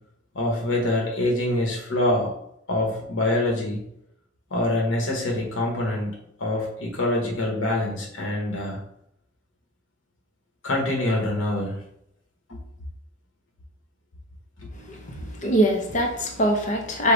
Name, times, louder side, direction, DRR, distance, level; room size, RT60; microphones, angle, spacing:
voice 1, 0.3-2.3 2.7-3.8 4.5-6.1 6.4-8.8 10.6-11.8 12.5-12.6, left 1 dB, 85° left, 0 dB, 1.1 m, -25 dB
voice 2, 14.9-17.1, right 1 dB, 40° left, 2 dB, 0.7 m, -23 dB
5.0 x 2.4 x 3.9 m, 0.75 s
head